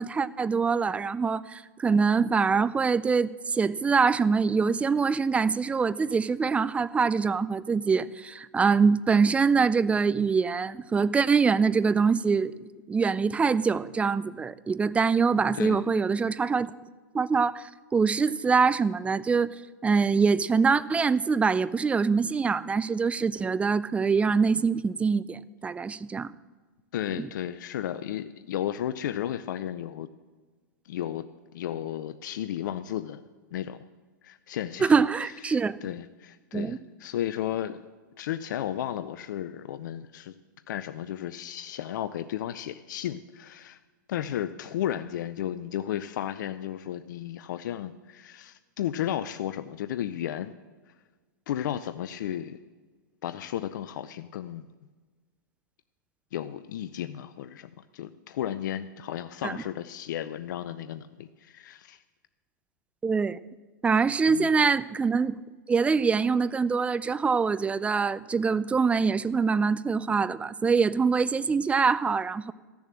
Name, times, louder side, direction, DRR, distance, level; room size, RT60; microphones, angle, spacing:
voice 1, 0.0-12.5 12.9-16.7 17.1-26.3 27.2-27.3 34.8-35.8 36.5-36.8 59.4-59.5 63.0-63.4 63.8-65.4 65.7-72.5, right 5 dB, 10° right, 17 dB, 0.4 m, -24 dB
voice 2, 15.5-15.9 26.9-30.1 30.9-31.3 31.5-33.2 33.5-33.9 34.2-34.9 35.4-37.8 38.2-40.3 40.7-43.8 44.1-50.5 51.5-52.6 53.2-54.7 56.3-62.0 64.3-64.5, left 11 dB, 70° left, 12 dB, 0.5 m, -34 dB
14.0 x 7.1 x 7.5 m, 1.4 s
hypercardioid pair, 120°, 11 cm